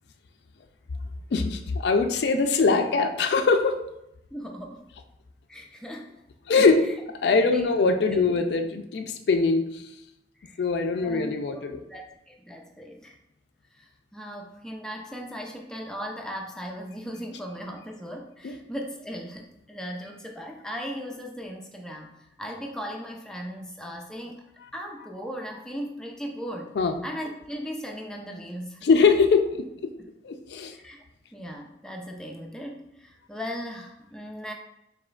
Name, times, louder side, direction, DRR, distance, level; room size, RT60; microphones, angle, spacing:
voice 1, 1.3-3.8 6.5-6.9 7.2-9.8 10.6-11.8 18.4-18.5 26.8-27.0 28.8-29.9 30.2-30.7, left 4 dB, 70° left, 6 dB, 0.4 m, -22 dB
voice 2, 4.3-4.9 5.5-6.1 6.8-6.9 7.5-7.8 8.1-8.2 10.4-10.6 11.0-13.2 13.7-22.1 22.4-24.5 24.7-26.7 27.0-28.9 30.0-30.1 30.7-31.0 31.3-34.5, equal, 5° left, 1 dB, 0.4 m, -38 dB
4.9 x 3.2 x 2.4 m, 0.85 s
head